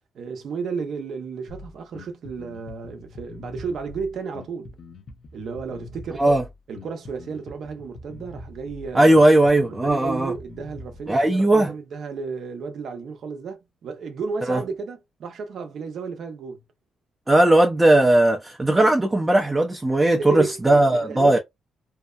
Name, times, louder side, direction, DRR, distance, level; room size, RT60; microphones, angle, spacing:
voice 1, 0.1-4.7 5.3-6.2 6.7-9.2 9.7-16.6 18.8-18.9 20.2-21.4, right 5 dB, 65° right, 0.6 m, -33 dB
Bass guitar, 1.5-11.1, left 2 dB, 55° left, 0.7 m, -43 dB
voice 2, 8.9-10.3 11.1-11.7 14.5-14.6 17.3-21.4, right 1 dB, 15° right, 0.5 m, -17 dB
2.7 x 2.0 x 2.3 m
cardioid pair, 90°, 0 cm